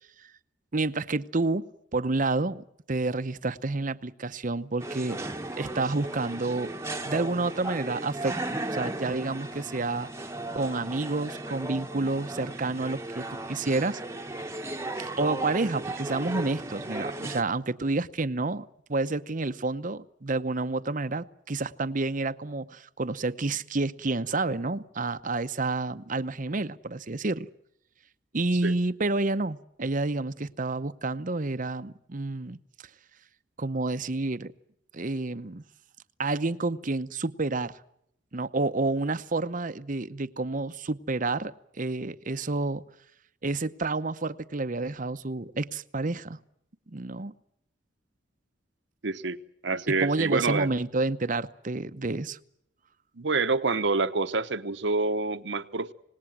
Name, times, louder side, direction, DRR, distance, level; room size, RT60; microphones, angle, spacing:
voice 1, 0.7-5.2 5.6-6.7 7.0-8.4 8.7-10.1 10.5-14.0 15.0-27.5 28.3-32.6 33.6-34.5 34.9-35.6 36.2-37.8 38.3-42.8 43.4-46.4 46.9-47.3 49.9-52.4, right 3 dB, 45° right, 0.8 m, -29 dB
sound 1, 4.8-17.4, right 2 dB, 15° right, 1.1 m, -36 dB
voice 2, 49.0-49.4 49.6-50.7 53.2-55.9, right 3 dB, 65° right, 1.0 m, -27 dB
26.5 x 19.5 x 7.4 m
head